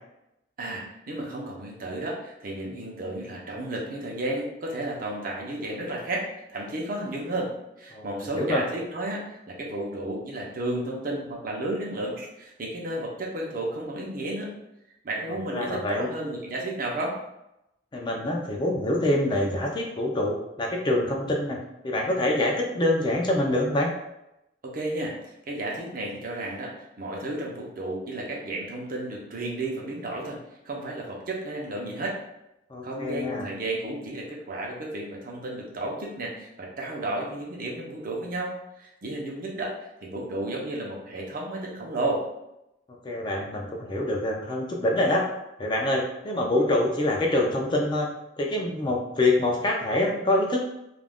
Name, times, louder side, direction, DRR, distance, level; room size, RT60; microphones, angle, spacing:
voice 1, 0.6-7.5 7.8-14.5 15.0-17.2 24.6-30.4 30.6-32.1 32.8-42.3, right 1 dB, 50° right, -1 dB, 0.6 m, -32 dB
voice 2, 15.5-16.1 17.9-21.6 21.8-23.9 32.7-33.5 43.0-45.2 45.6-48.1 48.4-50.6, left 1 dB, 25° left, 0 dB, 0.4 m, -25 dB
2.4 x 2.2 x 3.4 m, 0.87 s
head